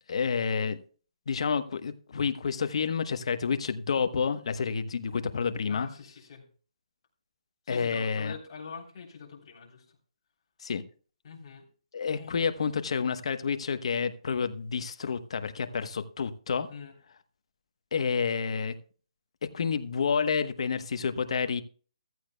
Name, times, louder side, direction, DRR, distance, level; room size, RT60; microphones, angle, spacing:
voice 1, 0.1-0.8 1.3-5.9 7.7-8.3 10.6-10.8 11.9-16.7 17.9-18.7 19.4-21.6, left 6 dB, 60° left, 1.1 m, -29 dB
voice 2, 5.7-6.4 7.6-10.0 11.2-11.6 12.1-12.4 16.7-16.9, left 5 dB, 45° left, 3.5 m, -44 dB
14.5 x 14.0 x 2.3 m
hypercardioid pair, 160°, 4 cm